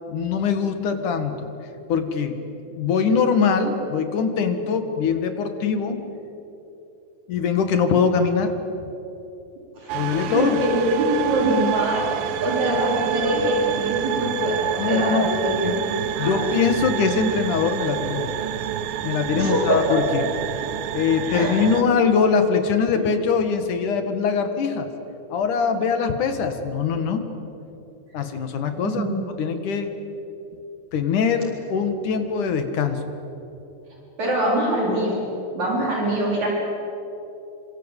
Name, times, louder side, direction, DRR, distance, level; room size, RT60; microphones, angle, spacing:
voice 1, 0.1-1.5 1.9-2.4 2.7-6.0 7.3-8.5 9.9-10.6 14.8-15.3 15.6-15.8 16.2-18.4 19.0-20.2 20.9-24.9 25.3-27.2 28.1-29.1 29.4-29.9 30.9-33.0, left 6 dB, 65° left, 7 dB, 3.2 m, -22 dB
voice 2, 9.8-16.5 19.4-19.8 21.2-21.5 22.9-23.0 28.8-29.1 34.2-35.3 35.6-36.5, right 1 dB, 55° right, -2 dB, 5.3 m, -24 dB
sound 1, 9.9-21.8, right 10 dB, 90° right, 2.8 m, -28 dB
28.0 x 25.5 x 8.3 m, 3.0 s
omnidirectional pair, 4.0 m